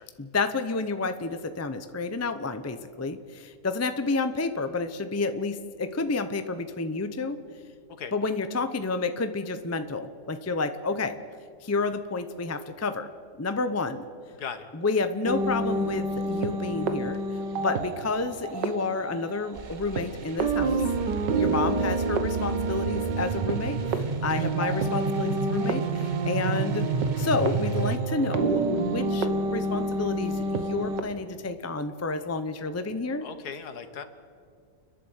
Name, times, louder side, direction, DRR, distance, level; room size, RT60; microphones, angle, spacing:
voice 1, 0.2-7.4 8.1-11.2 11.6-13.1 13.4-14.0 14.7-17.2 17.6-20.8 21.4-26.9 27.2-33.3, left 3 dB, 20° left, 9 dB, 0.4 m, -30 dB
sound 1, 15.2-31.0, right 3 dB, 90° right, 1.8 m, -29 dB
sound 2, 19.5-28.0, right 4 dB, 35° right, 0.8 m, -32 dB
voice 2, 20.7-21.2 24.3-24.5 33.2-34.0, left 6 dB, 65° left, 10 dB, 1.7 m, -39 dB
30.0 x 11.0 x 8.1 m, 2.2 s
omnidirectional pair, 1.8 m